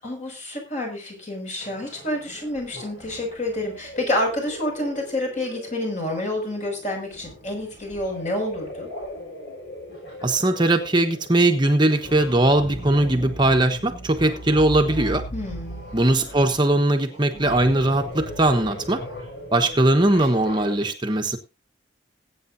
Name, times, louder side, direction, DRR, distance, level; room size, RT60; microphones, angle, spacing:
voice 1, 0.0-8.9 15.3-15.8, left 1 dB, 40° left, 1 dB, 6.2 m, -28 dB
sound 1, 1.6-20.9, equal, 65° left, 6.5 m, -38 dB
voice 2, 10.2-15.2 15.9-19.0 19.5-21.4, right 2 dB, 25° right, 4 dB, 1.1 m, -20 dB
20.5 x 8.9 x 2.7 m, 0.27 s
head